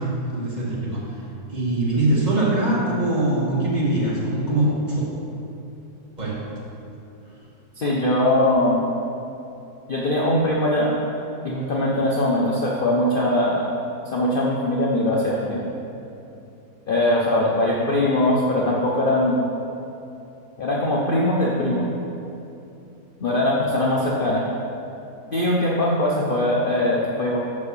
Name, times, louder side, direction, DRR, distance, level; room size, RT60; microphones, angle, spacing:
voice 1, 0.2-1.1 1.5-5.0 6.2-6.3, right 1 dB, 30° right, -7 dB, 1.7 m, -22 dB
voice 2, 7.8-8.9 9.9-10.9 11.4-13.7 14.1-15.6 16.9-19.4 20.6-21.9 23.2-24.4 25.3-27.4, left 1 dB, 45° left, -4 dB, 0.7 m, -21 dB
5.8 x 5.3 x 6.7 m, 2.8 s
omnidirectional pair, 1.6 m